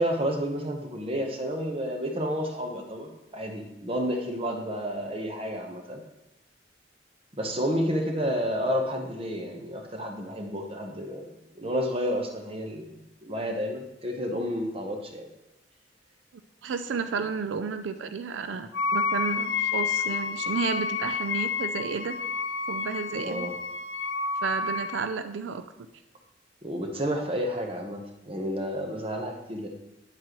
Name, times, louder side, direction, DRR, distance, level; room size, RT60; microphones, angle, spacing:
voice 1, 0.0-6.0 7.3-11.3 11.6-15.3 23.2-23.5 26.6-29.7, equal, 30° right, 3 dB, 1.0 m, -30 dB
voice 2, 16.6-22.2 22.7-23.5 24.4-25.9, right 5 dB, 90° right, 10 dB, 0.4 m, -32 dB
Wind instrument woodwind instrument, 18.7-25.1, left 5 dB, 80° left, 0.5 m, -30 dB
9.5 x 7.4 x 3.0 m, 0.94 s
head